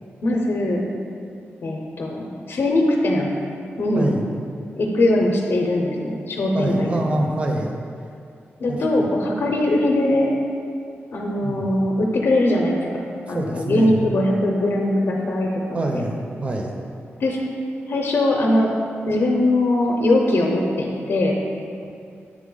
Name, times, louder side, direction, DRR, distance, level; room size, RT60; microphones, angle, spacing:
voice 1, 0.2-0.9 1.6-3.3 3.8-4.2 4.8-7.2 8.6-10.4 11.1-13.0 13.3-15.6 15.9-16.0 17.2-17.5 17.9-18.7 19.1-21.4, left 1 dB, 60° left, 0 dB, 0.6 m, -21 dB
voice 2, 6.5-7.7 8.7-8.8 11.4-11.7 13.3-14.0 15.7-16.7, right 2 dB, 30° right, 2 dB, 0.5 m, -25 dB
7.4 x 3.4 x 3.8 m, 2.4 s
wide cardioid pair, 170°, 4 cm